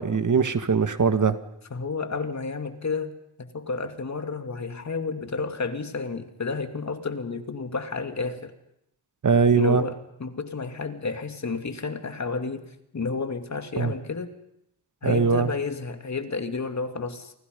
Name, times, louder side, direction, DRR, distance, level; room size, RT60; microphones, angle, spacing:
voice 1, 0.0-1.4 9.2-9.8 13.8-13.9 15.0-15.5, right 5 dB, 45° right, 9 dB, 2.0 m, -21 dB
voice 2, 1.7-8.5 9.5-14.3 15.0-17.3, left 4 dB, 40° left, 7 dB, 2.8 m, -31 dB
30.0 x 24.5 x 5.5 m, 0.80 s
cardioid pair, 60°, 41 cm